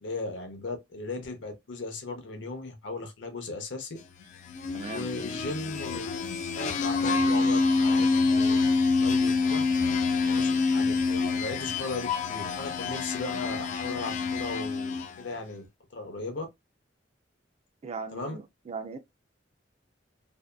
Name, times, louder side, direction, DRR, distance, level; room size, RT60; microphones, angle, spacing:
voice 1, 0.0-4.0 4.9-6.0 6.6-8.7 9.0-9.7 10.3-11.0 11.3-15.7 15.9-16.5 18.1-18.4, left 3 dB, 70° left, 0.7 m, -37 dB
sound 1, 4.4-15.3, left 4 dB, 40° left, 0.3 m, -27 dB
voice 2, 4.7-5.1 17.8-19.0, right 4 dB, 35° right, 0.3 m, -38 dB
2.7 x 2.1 x 2.2 m
head